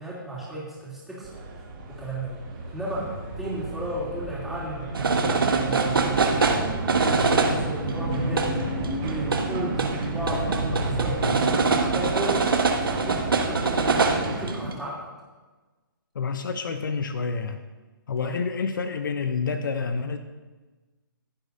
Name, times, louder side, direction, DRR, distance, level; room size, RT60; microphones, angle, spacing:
voice 1, 0.0-2.4 2.7-4.8 5.3-6.6 7.0-8.7 9.0-9.9 10.1-12.5 12.8-15.1 18.2-18.3, right 1 dB, ahead, -8 dB, 3.0 m, -34 dB
sound 1, 1.2-14.5, right 2 dB, 30° right, 2.8 m, -33 dB
sound 2, 4.9-14.7, right 4 dB, 75° right, 1.3 m, -24 dB
voice 2, 16.1-17.6 18.1-20.2, left 5 dB, 60° left, 8 dB, 0.7 m, -28 dB
15.5 x 8.0 x 2.7 m, 1.3 s
hypercardioid pair, 145°, 12 cm